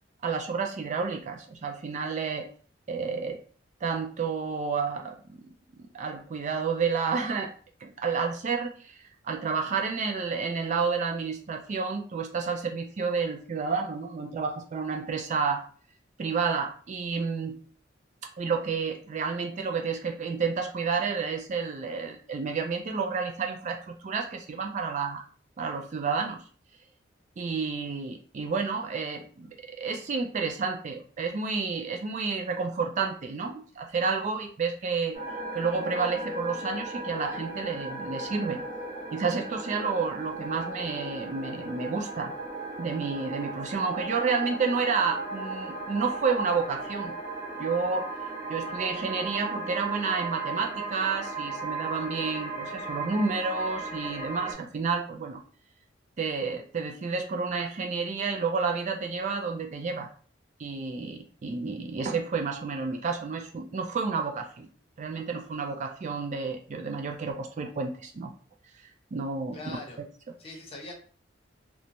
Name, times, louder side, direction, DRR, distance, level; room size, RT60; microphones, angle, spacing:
voice 1, 0.2-2.5 2.9-3.4 3.8-5.5 5.8-7.5 7.8-15.6 16.2-17.6 18.4-25.2 25.6-26.4 27.4-35.2 35.5-38.6 39.1-42.3 42.8-47.1 47.6-48.1 48.5-55.4 56.2-60.1 60.6-64.7 65.0-68.3 69.1-69.8, right 5 dB, 40° right, 3 dB, 0.3 m, -30 dB
sound 1, 35.1-54.5, right 2 dB, 25° right, 1.0 m, -36 dB
voice 2, 69.5-70.0 70.4-70.9, left 3 dB, 30° left, -1 dB, 0.7 m, -41 dB
3.0 x 2.1 x 2.6 m, 0.43 s
head